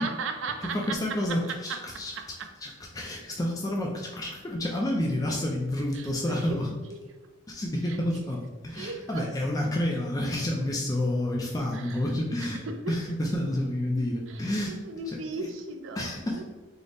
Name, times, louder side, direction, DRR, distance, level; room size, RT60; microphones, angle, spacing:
voice 1, 0.0-0.9 1.5-1.8 5.9-6.1 8.8-9.3 11.7-11.9 14.7-16.0 16.3-16.5, right 3 dB, 80° right, 5 dB, 0.4 m, -35 dB
voice 2, 0.6-2.1 2.6-6.7 7.5-14.8 15.1-15.5 16.0-16.5, left 1 dB, 20° left, -1 dB, 0.3 m, -29 dB
3.9 x 2.0 x 3.3 m, 1.2 s
head